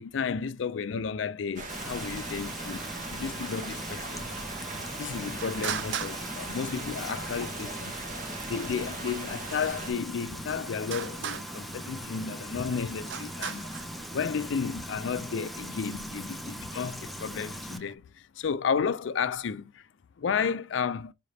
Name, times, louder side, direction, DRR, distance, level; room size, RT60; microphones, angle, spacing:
voice 1, 0.0-2.8 3.1-4.5 5.0-8.0 8.5-13.7 14.1-19.9 20.2-21.1, left 6 dB, 75° left, 0.4 m, -32 dB
sound 1, 1.6-9.9, right 3 dB, 45° right, 0.9 m, -39 dB
Frying (food), 1.7-17.8, equal, ahead, 0.4 m, -40 dB
Traffic noise roadway noise, 2.5-18.0, right 8 dB, 65° right, 0.4 m, -43 dB
4.8 x 3.2 x 2.7 m
head